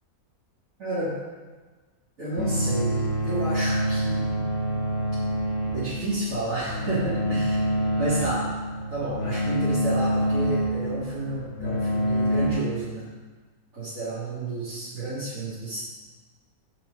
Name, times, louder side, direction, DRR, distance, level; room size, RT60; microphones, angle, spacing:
voice 1, 0.8-1.1 2.2-4.3 5.7-7.7 8.0-8.5 8.9-13.1 13.7-15.8, right 2 dB, 60° right, -11 dB, 2.9 m, -31 dB
sound 1, 2.4-12.5, equal, 65° left, 2.6 m, -26 dB
15.0 x 5.3 x 5.3 m, 1.4 s
omnidirectional pair, 1.6 m